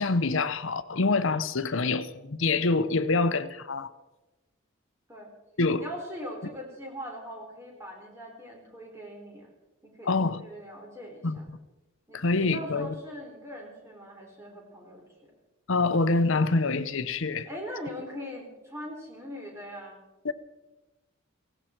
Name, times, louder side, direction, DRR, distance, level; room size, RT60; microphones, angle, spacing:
voice 1, 0.0-3.9 5.6-5.9 10.0-10.4 11.2-11.6 12.1-12.9 15.7-17.5 20.2-20.3, left 3 dB, 65° left, 0.8 m, -26 dB
voice 2, 5.8-9.5 9.8-11.5 12.1-15.0 17.5-20.0, equal, 15° right, 4.1 m, -41 dB
18.0 x 16.5 x 4.5 m
head